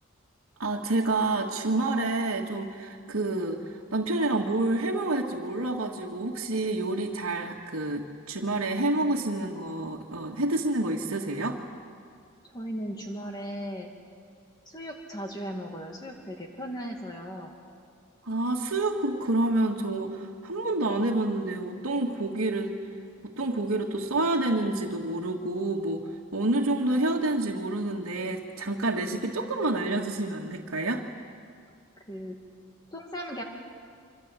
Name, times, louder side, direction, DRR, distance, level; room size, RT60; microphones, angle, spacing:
voice 1, 0.6-11.6 18.2-22.7 23.2-26.0 26.3-31.1, right 2 dB, 90° right, -3 dB, 1.9 m, -28 dB
voice 2, 12.4-13.9 14.7-17.5 32.0-32.4 32.9-33.4, equal, 20° left, 1 dB, 2.1 m, -37 dB
27.5 x 25.0 x 8.3 m, 2.2 s
head